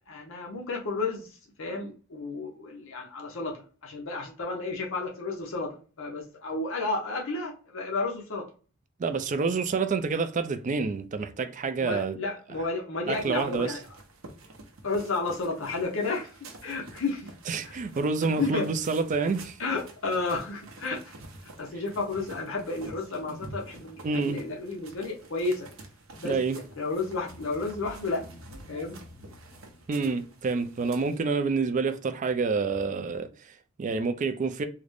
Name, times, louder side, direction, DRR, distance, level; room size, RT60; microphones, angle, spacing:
voice 1, 0.1-8.5 11.8-13.9 14.8-17.3 17.6-17.8 18.4-18.7 19.6-21.1 21.4-25.7 26.1-26.4 26.8-28.3 28.7-29.0 32.9-33.0, left 3 dB, 65° left, 0.7 m, -32 dB
voice 2, 9.0-12.2 13.1-13.7 17.5-19.6 24.0-24.4 26.2-26.6 29.9-34.7, right 4 dB, 35° right, 0.3 m, -28 dB
sound 1, 13.1-31.2, right 2 dB, 70° right, 0.7 m, -48 dB
sound 2, 27.3-30.3, left 1 dB, 25° left, 0.7 m, -50 dB
3.7 x 2.1 x 3.3 m
head